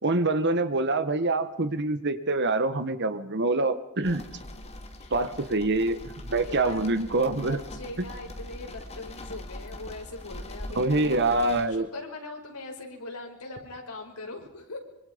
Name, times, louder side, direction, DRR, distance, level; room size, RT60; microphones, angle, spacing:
voice 1, 0.0-4.2 5.1-7.6 8.0-8.1 10.7-11.9, right 2 dB, 50° right, 10 dB, 1.6 m, -25 dB
sound 1, 4.0-11.7, left 1 dB, 30° left, 2.5 m, -42 dB
voice 2, 5.0-5.3 6.4-6.9 7.3-11.3 11.7-14.8, left 2 dB, 85° left, 1 dB, 5.6 m, -41 dB
25.0 x 24.5 x 5.3 m, 0.87 s
head